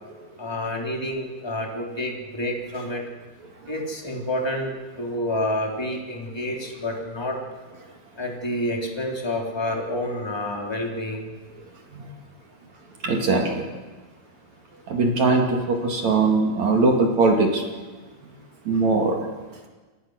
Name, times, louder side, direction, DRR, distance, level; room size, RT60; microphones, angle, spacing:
voice 1, 0.4-3.0 3.7-7.4 8.2-11.3, left 1 dB, 5° left, 0 dB, 2.8 m, -28 dB
voice 2, 13.0-13.7 14.9-17.6 18.6-19.2, right 3 dB, 45° right, 2 dB, 3.2 m, -21 dB
28.0 x 19.5 x 6.5 m, 1.3 s
omnidirectional pair, 4.7 m